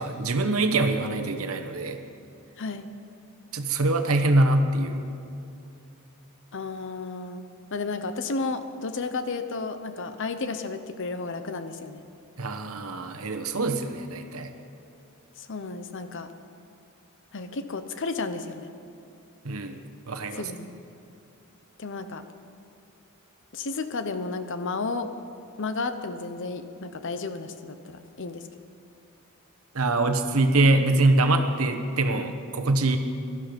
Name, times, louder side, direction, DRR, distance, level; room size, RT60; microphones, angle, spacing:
voice 1, 0.0-2.0 3.5-5.0 12.4-14.5 19.4-19.8 20.1-20.5 29.7-33.0, right 2 dB, 70° right, 7 dB, 1.1 m, -24 dB
voice 2, 2.6-2.9 6.5-7.4 7.7-12.0 15.4-16.3 17.3-18.7 20.3-20.7 21.8-22.2 23.5-25.1 25.6-28.4, left 3 dB, 55° left, 10 dB, 0.8 m, -32 dB
17.5 x 12.0 x 5.3 m, 2.7 s
head